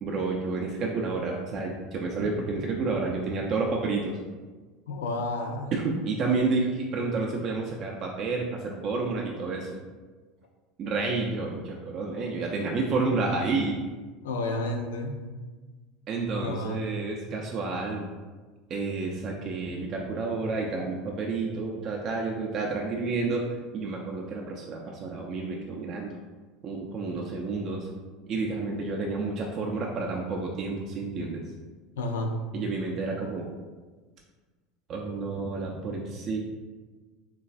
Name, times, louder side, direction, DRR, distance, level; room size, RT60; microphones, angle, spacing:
voice 1, 0.0-4.2 5.7-9.7 10.8-13.8 16.1-18.1 18.7-23.4 23.7-26.2 26.6-27.9 28.3-31.4 32.5-33.5 34.9-36.4, right 3 dB, 45° right, -1 dB, 0.3 m, -30 dB
voice 2, 4.9-5.7 14.2-15.3 16.4-16.8 32.0-32.3, left 2 dB, 85° left, 3 dB, 0.3 m, -31 dB
3.1 x 2.2 x 2.4 m, 1.4 s
hypercardioid pair, 90°, 0 cm